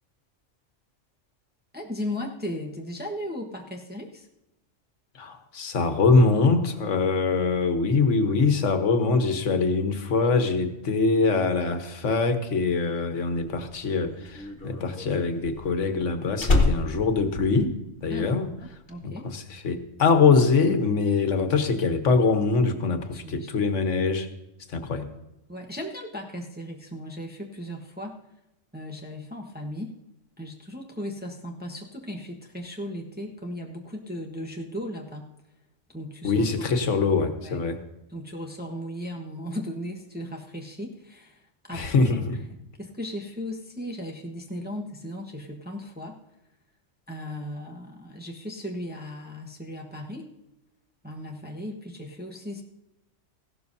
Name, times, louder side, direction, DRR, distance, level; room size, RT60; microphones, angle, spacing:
voice 1, 1.7-4.3 18.1-18.3 18.6-19.3 23.1-23.5 25.5-28.2 28.7-29.9 30.4-35.3 35.9-36.6 37.0-37.1 37.4-37.6 38.1-41.4 41.7-42.2 42.8-46.2 47.1-50.3 51.0-52.6, equal, 10° right, 0 dB, 1.1 m, -36 dB
voice 2, 5.1-17.8 18.0-18.5 19.0-24.3 24.7-25.1 36.2-37.8 41.7-42.4, left 4 dB, 75° left, 8 dB, 1.4 m, -23 dB
Slam, 13.4-18.2 18.5-18.9, left 2 dB, 50° left, 1.8 m, -27 dB
16.0 x 12.5 x 2.7 m, 0.92 s
omnidirectional pair, 1.3 m